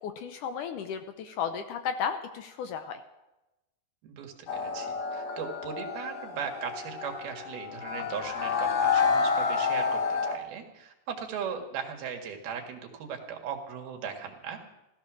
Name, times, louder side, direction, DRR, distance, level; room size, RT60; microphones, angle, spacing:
voice 1, 0.0-3.0, left 7 dB, 70° left, 8 dB, 2.1 m, -34 dB
voice 2, 4.0-14.6, right 7 dB, 85° right, 3 dB, 3.8 m, -38 dB
sound 1, 4.5-10.4, left 5 dB, 55° left, 2.3 m, -29 dB
16.0 x 14.0 x 6.2 m, 0.97 s
omnidirectional pair, 4.3 m